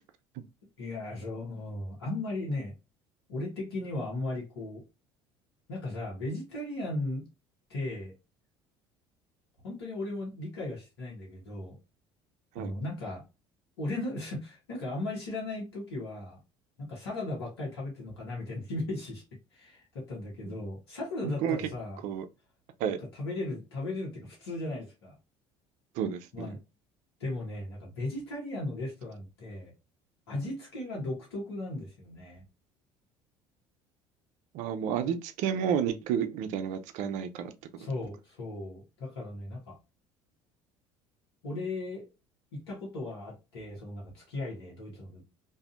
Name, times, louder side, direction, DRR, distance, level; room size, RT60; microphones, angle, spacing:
voice 1, 0.8-2.7 3.3-4.8 5.7-7.2 7.7-8.1 9.6-11.8 12.5-13.2 13.8-16.4 16.8-19.2 19.5-22.0 22.9-25.1 26.3-26.6 27.2-29.7 30.3-32.4 35.0-35.1 37.8-39.8 41.4-42.1 42.5-45.3, left 2 dB, 90° left, 1.3 m, -36 dB
voice 2, 21.2-21.7 22.0-22.3 22.8-23.0 26.0-26.6 34.5-37.5, right 8 dB, 65° right, 0.5 m, -31 dB
2.6 x 2.5 x 2.4 m
hypercardioid pair, 75°, 13 cm